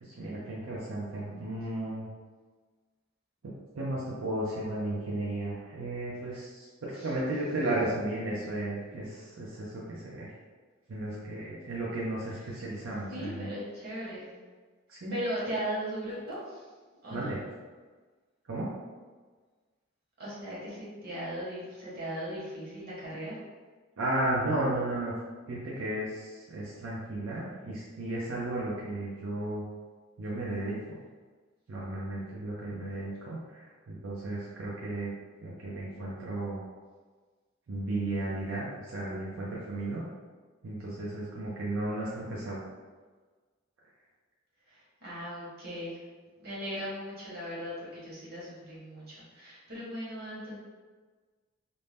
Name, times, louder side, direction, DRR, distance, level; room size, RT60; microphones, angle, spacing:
voice 1, 0.2-2.1 3.4-10.3 10.9-13.5 14.9-15.2 17.1-17.4 18.5-18.7 24.0-25.1 25.5-29.6 30.2-31.0 31.7-35.1 35.4-36.6 37.7-40.0 40.6-42.6, right 1 dB, 90° right, -6 dB, 0.5 m, -34 dB
voice 2, 13.1-14.3 15.1-16.6 17.0-17.3 20.2-23.4 44.7-46.0 46.4-50.6, equal, 55° right, -8 dB, 1.1 m, -38 dB
2.6 x 2.1 x 3.3 m, 1.4 s
head